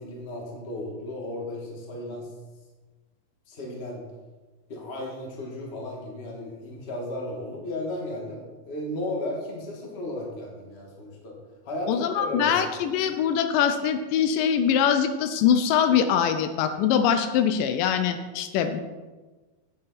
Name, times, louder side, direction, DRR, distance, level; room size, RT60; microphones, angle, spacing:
voice 1, 0.0-2.3 3.5-4.0 4.7-11.4 11.6-12.5, left 1 dB, 25° left, -2 dB, 1.5 m, -34 dB
voice 2, 11.9-18.8, left 8 dB, 80° left, 8 dB, 2.3 m, -23 dB
9.2 x 8.7 x 4.2 m, 1.3 s
omnidirectional pair, 3.9 m